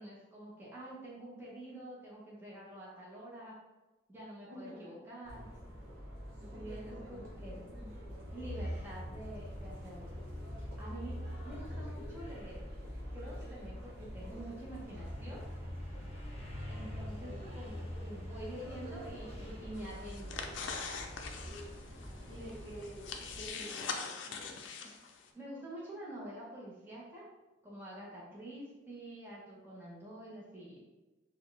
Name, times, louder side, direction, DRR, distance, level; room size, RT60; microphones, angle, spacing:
voice 1, 0.0-3.6 4.1-5.5 6.6-7.7 8.3-10.1 10.8-12.7 13.1-15.4 16.7-20.5 25.3-27.2 27.6-30.8, right 1 dB, 10° right, -6 dB, 0.8 m, -47 dB
voice 2, 4.4-5.0 6.4-7.9 17.3-17.7 21.4-21.7 22.3-24.9, right 1 dB, 75° right, -3 dB, 0.9 m, -50 dB
sound 1, 5.2-23.5, equal, 45° right, 1.0 m, -47 dB
sound 2, 8.3-22.8, left 1 dB, 35° left, 0.9 m, -46 dB
sound 3, 19.7-25.3, left 5 dB, 75° left, 0.4 m, -43 dB
4.2 x 2.3 x 3.2 m, 1.1 s
head